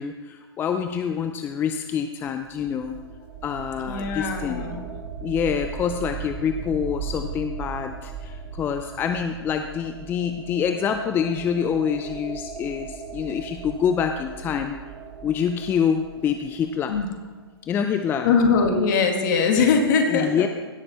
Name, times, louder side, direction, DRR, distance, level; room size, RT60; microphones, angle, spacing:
voice 1, 0.0-3.0 3.4-4.7 5.2-14.8 15.2-16.9 17.6-18.3 20.1-20.5, left 7 dB, 15° left, 7 dB, 0.4 m, -26 dB
sound 1, 2.3-17.1, right 6 dB, 45° right, 1.2 m, -38 dB
voice 2, 3.9-4.8 16.9-17.1 18.2-20.4, left 5 dB, 50° left, 3 dB, 2.1 m, -21 dB
16.5 x 6.6 x 4.4 m, 1.3 s
hypercardioid pair, 125°, 13 cm